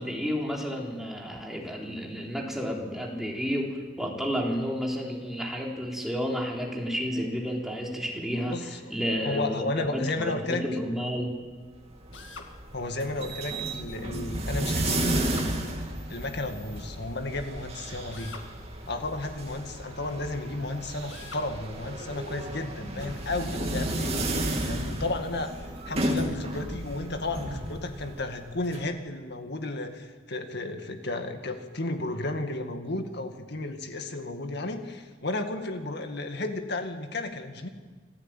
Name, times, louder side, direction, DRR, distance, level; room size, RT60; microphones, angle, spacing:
voice 1, 0.0-11.4, equal, ahead, -2 dB, 3.7 m, -31 dB
voice 2, 8.5-8.9 9.2-10.7 12.7-15.3 16.1-18.4 18.9-24.2 24.7-25.5 25.9-37.7, left 2 dB, 60° left, 6 dB, 2.1 m, -33 dB
sound 1, 11.7-28.8, right 1 dB, 35° right, 2.7 m, -33 dB
Drill, 12.1-12.5 15.1-15.5 18.1-18.5 21.1-21.5, left 4 dB, 85° left, 2.1 m, -43 dB
26.0 x 15.0 x 9.1 m, 1.4 s
head